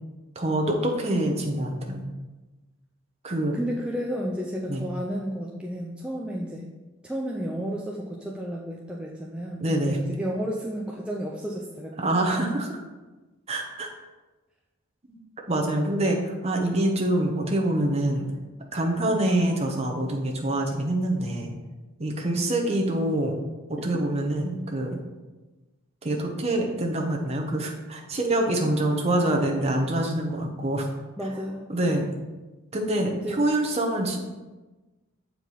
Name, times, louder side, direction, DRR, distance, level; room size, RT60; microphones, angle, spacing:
voice 1, 0.3-2.1 3.2-3.6 4.7-4.9 9.6-10.0 12.0-12.8 13.5-13.9 15.0-15.2 15.5-18.3 18.7-21.5 22.0-23.4 23.8-25.0 26.0-30.9 31.7-32.0 32.7-34.2, right 1 dB, 30° right, 1 dB, 0.9 m, -25 dB
voice 2, 3.5-6.7 7.0-11.9 23.8-23.9 31.2-32.1 33.1-33.4, equal, 5° right, -3 dB, 0.4 m, -32 dB
7.3 x 4.6 x 4.0 m, 1.2 s
head